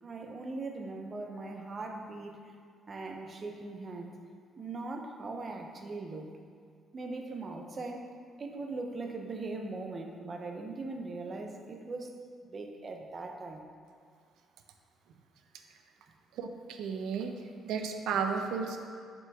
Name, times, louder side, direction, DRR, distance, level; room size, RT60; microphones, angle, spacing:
voice 1, 0.0-2.5 2.9-4.2 4.6-6.3 6.9-8.1 8.4-12.2 12.4-13.6, right 3 dB, 30° right, 3 dB, 0.6 m, -40 dB
voice 2, 16.3-17.3 17.7-18.8, right 6 dB, 80° right, 5 dB, 0.6 m, -33 dB
7.2 x 6.1 x 3.5 m, 2.2 s
cardioid pair, 170°, 0 cm